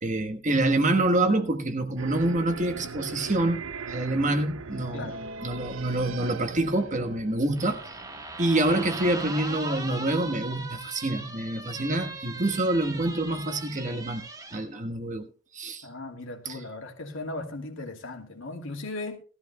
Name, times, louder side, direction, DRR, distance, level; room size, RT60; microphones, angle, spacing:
voice 1, 0.0-5.1 5.4-7.9 8.4-14.2 14.5-15.9 16.4-16.6, right 2 dB, 35° right, 1.4 m, -27 dB
sound 1, 2.0-8.8, right 4 dB, 70° right, 0.7 m, -40 dB
sound 2, 7.6-14.6, right 2 dB, 15° right, 1.4 m, -39 dB
voice 2, 15.8-19.2, left 2 dB, 65° left, 2.6 m, -37 dB
18.5 x 13.5 x 2.3 m
head